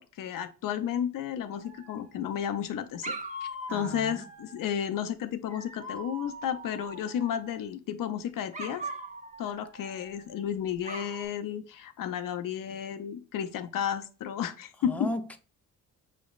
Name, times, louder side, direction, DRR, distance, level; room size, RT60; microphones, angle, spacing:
voice 1, 0.2-8.9 9.4-15.1, left 9 dB, 70° left, 0.5 m, -33 dB
Dog, 1.5-2.3 3.0-4.7 5.5-7.6 8.5-10.4 10.8-11.3, right 2 dB, 20° right, 0.9 m, -41 dB
voice 2, 3.7-4.2 14.8-15.4, left 1 dB, 5° left, 0.5 m, -35 dB
6.1 x 3.2 x 2.3 m
cardioid pair, 65°, 34 cm